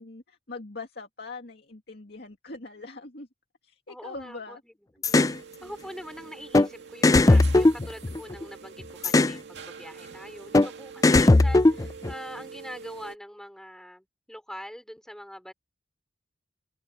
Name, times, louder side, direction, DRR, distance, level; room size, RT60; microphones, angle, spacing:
voice 1, 0.0-3.3 3.6-4.6, left 3 dB, 60° left, 2.4 m, -42 dB
voice 2, 3.9-5.3 5.6-15.5, equal, 5° left, 5.5 m, -43 dB
sound 1, 5.0-5.3 6.5-6.7 7.0-8.4 9.0-9.4 10.5-10.7 11.0-12.1, left 2 dB, 20° left, 0.4 m, -18 dB
sound 2, 5.1-13.2, right 5 dB, 65° right, 2.7 m, -45 dB
open air
head